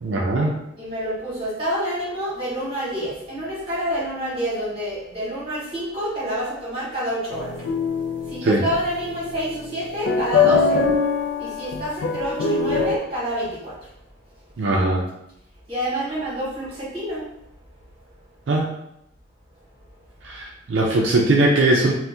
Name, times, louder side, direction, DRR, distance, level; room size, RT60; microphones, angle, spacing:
voice 1, 0.0-0.5 8.4-8.6 14.6-15.0 18.5-18.7 20.2-21.9, right 2 dB, 80° right, -1 dB, 0.4 m, -20 dB
voice 2, 0.8-7.6 8.3-10.8 11.4-13.9 15.7-17.2, equal, 30° right, -7 dB, 1.3 m, -28 dB
sound 1, 7.3-13.0, left 4 dB, 70° left, 0.3 m, -23 dB
2.6 x 2.1 x 3.4 m, 0.82 s
head